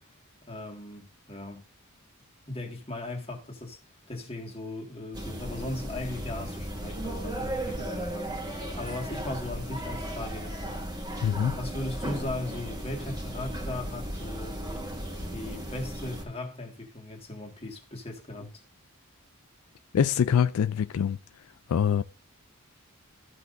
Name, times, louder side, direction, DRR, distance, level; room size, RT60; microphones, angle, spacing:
voice 1, 0.5-1.6 2.5-3.8 4.1-10.8 11.6-14.6 15.3-18.6, left 2 dB, 25° left, 1.9 m, -38 dB
sound 1, 5.1-16.2, right 1 dB, 20° right, 1.7 m, -35 dB
voice 2, 11.2-11.6 19.9-21.2 21.7-22.0, left 8 dB, 70° left, 0.3 m, -24 dB
14.0 x 5.9 x 2.6 m
head